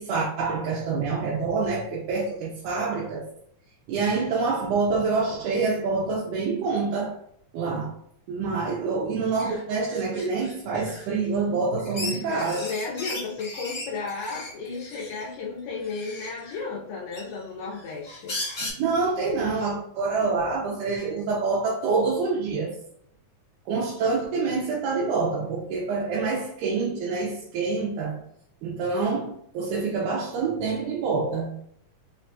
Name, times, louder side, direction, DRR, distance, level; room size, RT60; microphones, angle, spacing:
voice 1, 0.0-3.3 3.9-7.2 7.5-7.9 8.3-12.7 18.6-22.7 23.7-28.2 28.6-31.5, right 4 dB, 85° right, 2.2 m, -26 dB
sound 1, 9.4-9.6 9.9-11.2 11.8-15.2 15.8-16.6 17.1-18.7, left 2 dB, 35° left, 0.7 m, -37 dB
voice 2, 12.2-18.4 19.5-19.6, left 4 dB, 80° left, 1.5 m, -34 dB
5.3 x 2.2 x 2.6 m
omnidirectional pair, 3.5 m